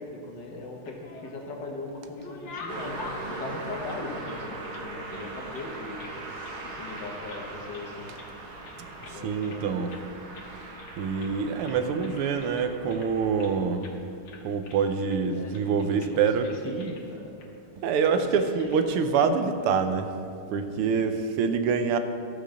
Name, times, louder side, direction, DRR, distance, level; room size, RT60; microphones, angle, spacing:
voice 1, 0.0-3.0 3.3-6.1 6.6-8.1 9.1-9.7 15.3-17.3 18.1-19.0 20.9-21.1 21.4-21.6, left 3 dB, 55° left, 0 dB, 1.8 m, -39 dB
sound 1, 0.7-1.5 1.9-4.8 5.1-6.2 6.4-6.6 6.9-7.5 7.7-8.3 8.6-9.6 9.9-10.1 10.3-10.5 10.8-11.4 11.6-13.5 13.8-14.0 14.2-15.2 15.5-15.7 16.0-16.1 16.4-17.0 17.4-17.5 18.4-18.8, left 4 dB, 80° left, 2.1 m, -46 dB
Car passing by, 2.7-14.1, right 2 dB, 70° right, 2.0 m, -40 dB
voice 2, 9.1-9.9 11.0-13.9 14.4-16.9 17.8-20.1 20.5-22.0, right 6 dB, 85° right, 8 dB, 1.6 m, -26 dB
14.5 x 5.8 x 6.3 m, 2.4 s
omnidirectional pair, 2.4 m